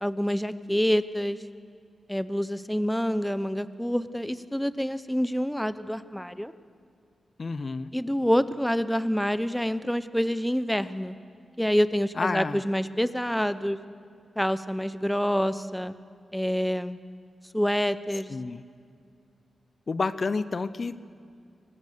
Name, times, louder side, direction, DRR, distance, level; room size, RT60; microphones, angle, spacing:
voice 1, 0.0-1.4 2.1-6.5 7.9-11.1 11.6-13.8 14.4-15.9 16.3-17.0 17.5-18.3, equal, 5° left, 13 dB, 0.7 m, -27 dB
voice 2, 7.4-7.9 12.2-12.6 18.3-18.6 19.9-21.0, left 4 dB, 50° left, 14 dB, 0.7 m, -29 dB
24.5 x 18.5 x 6.8 m, 2.3 s
cardioid pair, 80°, 0 cm